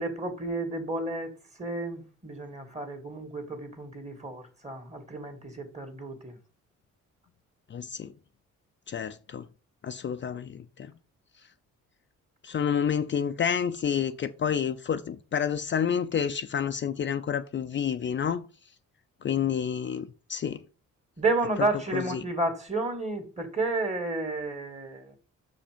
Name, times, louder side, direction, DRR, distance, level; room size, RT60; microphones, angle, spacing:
voice 1, 0.0-1.3 1.6-6.4 21.2-25.2, right 2 dB, 20° right, 2.3 m, -31 dB
voice 2, 7.7-8.1 8.9-9.4 9.8-10.9 12.4-18.5 19.2-20.6 21.9-22.2, left 8 dB, 40° left, 0.5 m, -29 dB
6.5 x 5.0 x 5.1 m
cardioid pair, 90°, 30 cm